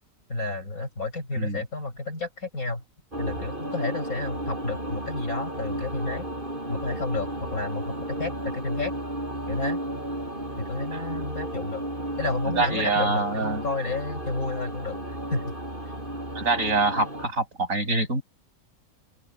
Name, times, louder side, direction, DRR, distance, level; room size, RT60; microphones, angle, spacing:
voice 1, 0.3-2.8 3.2-6.3 6.7-8.9 9.5-9.8 10.6-11.8 12.2-15.6, left 2 dB, 85° left, 5.9 m, -31 dB
sound 1, 3.1-17.3, right 1 dB, 35° right, 8.2 m, -34 dB
voice 2, 12.5-13.6 16.3-18.2, right 3 dB, 70° right, 8.4 m, -25 dB
open air
omnidirectional pair, 1.4 m